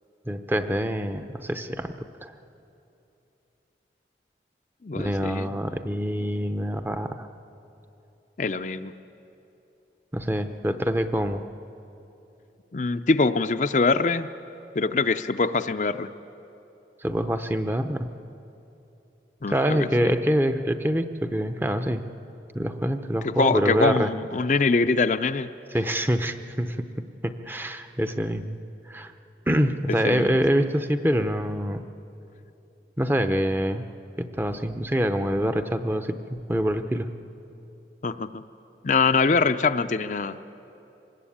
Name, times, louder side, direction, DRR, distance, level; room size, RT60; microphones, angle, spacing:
voice 1, 0.3-1.9 2.2-2.3 4.9-7.3 10.1-11.4 17.0-18.1 19.5-22.0 22.5-24.1 25.7-26.9 27.2-28.6 28.9-29.1 29.5-31.8 33.0-33.8 34.2-37.1, equal, 10° right, 8 dB, 0.7 m, -25 dB
voice 2, 4.8-5.5 8.4-8.9 12.7-14.3 14.7-16.1 19.4-20.1 23.2-25.5 30.0-30.4 38.0-38.4 38.8-40.4, left 4 dB, 45° left, 10 dB, 0.5 m, -23 dB
24.5 x 20.0 x 8.6 m, 2.9 s
head